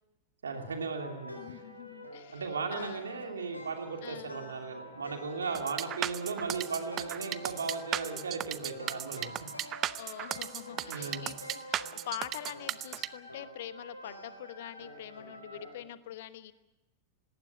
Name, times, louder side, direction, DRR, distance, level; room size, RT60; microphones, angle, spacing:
voice 1, 0.4-1.4 2.3-9.7 10.9-11.3, right 4 dB, 70° right, 4 dB, 2.8 m, -36 dB
sound 1, 0.5-15.8, left 1 dB, 85° left, 4.0 m, -47 dB
voice 2, 1.3-2.4 2.7-3.0 4.0-4.4 10.0-16.5, left 12 dB, 55° left, 14 dB, 1.1 m, -44 dB
sound 2, 5.5-13.1, right 12 dB, 30° right, 0.7 m, -35 dB
19.5 x 17.0 x 9.9 m, 1.0 s
figure-of-eight pair, 90°, 0 cm